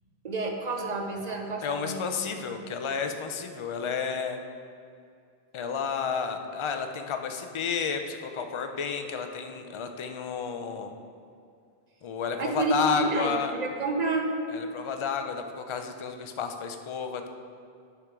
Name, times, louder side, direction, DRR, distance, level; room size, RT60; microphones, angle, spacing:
voice 1, 0.2-2.0 2.5-2.6 12.4-14.3, right 2 dB, 45° right, 2 dB, 0.7 m, -29 dB
voice 2, 1.6-4.4 5.5-10.9 12.0-13.5 14.5-17.3, left 6 dB, 45° left, 6 dB, 0.4 m, -31 dB
8.6 x 3.6 x 6.0 m, 2.4 s
omnidirectional pair, 1.1 m